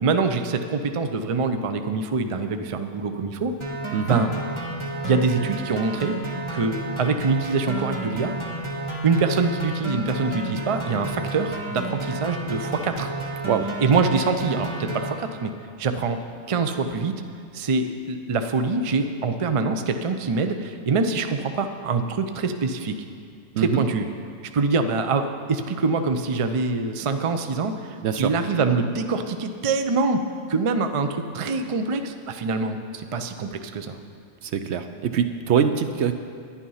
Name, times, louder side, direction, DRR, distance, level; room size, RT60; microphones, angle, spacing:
voice 1, 0.0-3.5 4.1-4.3 5.0-6.2 6.5-8.4 9.0-13.1 13.8-15.5 15.8-16.2 16.5-17.1 17.5-23.0 23.6-24.1 24.5-30.2 30.5-34.0, right 4 dB, 40° right, 7 dB, 0.4 m, -24 dB
sound 1, 3.6-15.1, right 2 dB, 25° right, 1.3 m, -31 dB
voice 2, 34.4-36.1, right 8 dB, 70° right, 9 dB, 0.8 m, -23 dB
11.0 x 10.0 x 5.6 m, 2.3 s
omnidirectional pair, 1.3 m